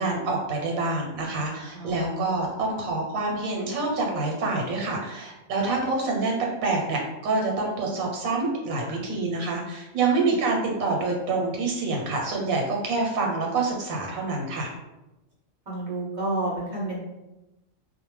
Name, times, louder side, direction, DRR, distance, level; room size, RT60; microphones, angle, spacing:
voice 1, 0.0-6.3 6.6-14.7, right 3 dB, 90° right, 0 dB, 1.1 m, -27 dB
voice 2, 1.7-2.3 10.2-10.4 15.7-17.0, right 2 dB, 45° right, -6 dB, 0.7 m, -30 dB
2.4 x 2.1 x 3.1 m, 1.0 s
omnidirectional pair, 1.4 m